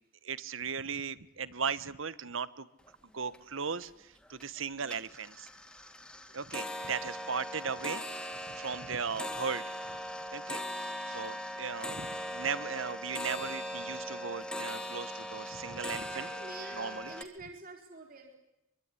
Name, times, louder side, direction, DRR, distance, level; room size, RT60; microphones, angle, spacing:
voice 1, 0.2-2.7 3.1-5.5 6.3-8.0 8.5-9.6 10.3-10.6 11.1-16.3 16.7-17.1, right 6 dB, 75° right, 18 dB, 1.2 m, -37 dB
sound 1, 2.9-3.0 3.3-3.9 4.3-4.6 4.9-17.2, left 1 dB, 5° left, 2.2 m, -40 dB
voice 2, 16.1-18.4, right 2 dB, 45° right, 1 dB, 4.3 m, -47 dB
24.5 x 24.0 x 9.9 m, 0.90 s
head